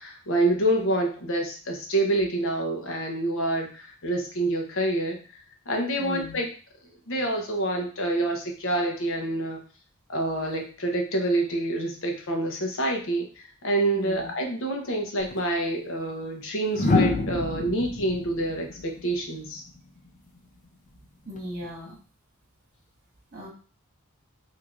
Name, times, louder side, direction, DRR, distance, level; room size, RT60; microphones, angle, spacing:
voice 1, 0.0-6.5 7.1-9.6 10.1-19.6, right 1 dB, 65° left, 2 dB, 1.0 m, -27 dB
voice 2, 6.0-6.4 13.9-14.3 21.3-22.0 23.3-23.5, equal, 45° right, -3 dB, 1.8 m, -37 dB
sound 1, 15.2-15.4 16.7-19.8 21.4-21.7, left 3 dB, 35° left, 0.5 m, -27 dB
4.7 x 2.9 x 2.5 m, 0.38 s
head